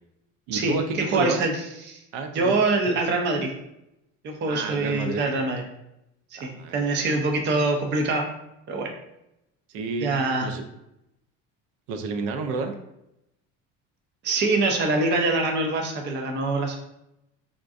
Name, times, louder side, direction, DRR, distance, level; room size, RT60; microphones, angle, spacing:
voice 1, 0.5-1.5 2.1-2.5 4.5-5.2 6.4-7.1 9.7-10.1 10.4-10.6 11.9-12.7, right 4 dB, 85° right, 6 dB, 0.5 m, -30 dB
voice 2, 1.1-2.0 2.3-3.5 4.2-5.6 6.3-8.3 8.7-8.9 10.0-10.5 14.2-16.8, right 3 dB, 35° right, 3 dB, 0.4 m, -24 dB
3.6 x 2.5 x 2.4 m, 0.85 s
cardioid pair, 155°, 31 cm